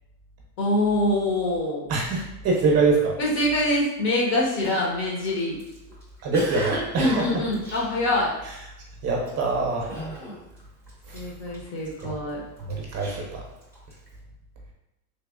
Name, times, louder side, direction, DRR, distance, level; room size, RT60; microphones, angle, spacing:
voice 1, 0.6-1.9 3.2-5.6 7.0-8.3 11.1-12.4, left 1 dB, 55° left, -3 dB, 1.3 m, -24 dB
voice 2, 1.9-3.2 6.2-7.4 8.4-8.6 9.0-10.0 11.1-11.3 12.0-12.2 12.6-13.4, right 3 dB, 35° right, -1 dB, 0.7 m, -25 dB
Cough, 4.6-8.7 9.2-9.5 9.9-10.6 10.9-12.0 12.6-14.1, right 1 dB, 5° left, 0.6 m, -35 dB
3.4 x 2.9 x 2.5 m, 0.88 s
supercardioid pair, 135°, 47 cm